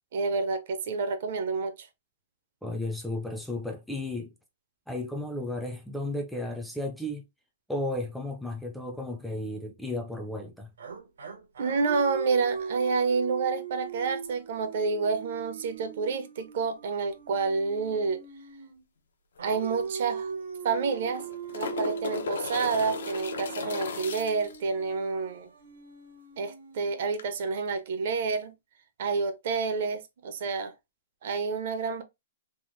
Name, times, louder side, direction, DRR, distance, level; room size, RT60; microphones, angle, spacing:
voice 1, 0.1-1.9 11.6-18.2 19.4-20.3 20.6-21.3 21.5-25.5 26.4-28.6 29.0-30.7 31.2-32.0, right 4 dB, 55° right, 0.6 m, -29 dB
voice 2, 2.6-4.3 4.9-7.2 7.7-10.7, left 1 dB, ahead, 0.4 m, -34 dB
sound 1, 10.8-18.8 19.4-27.5, right 6 dB, 85° right, 1.0 m, -40 dB
sound 2, 19.4-19.5 19.7-19.8 20.9-24.6 27.1-27.2, left 6 dB, 75° left, 0.6 m, -36 dB
3.4 x 2.0 x 3.1 m
hypercardioid pair, 155°, 0 cm